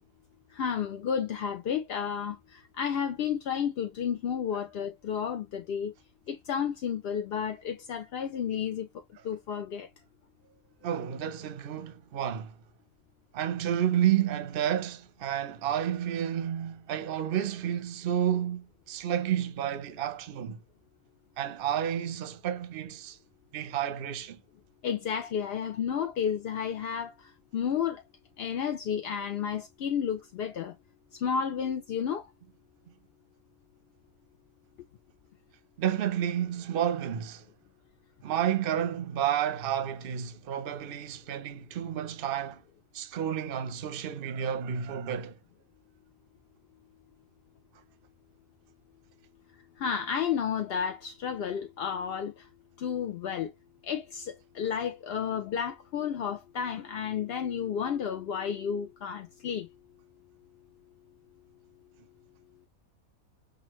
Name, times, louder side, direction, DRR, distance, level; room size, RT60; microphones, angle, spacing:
voice 1, 0.5-2.4 2.8-5.9 6.3-8.9 9.2-9.9 24.8-27.1 27.5-28.0 28.4-30.7 31.2-32.2 49.8-52.3 52.8-53.5 53.9-59.7, left 7 dB, 60° left, 0.6 m, -31 dB
voice 2, 10.8-12.5 13.3-20.6 21.4-23.2 23.5-24.4 35.8-37.4 38.2-42.6 42.9-45.4, right 10 dB, 50° right, 0.7 m, -30 dB
6.1 x 2.6 x 3.1 m
omnidirectional pair, 1.5 m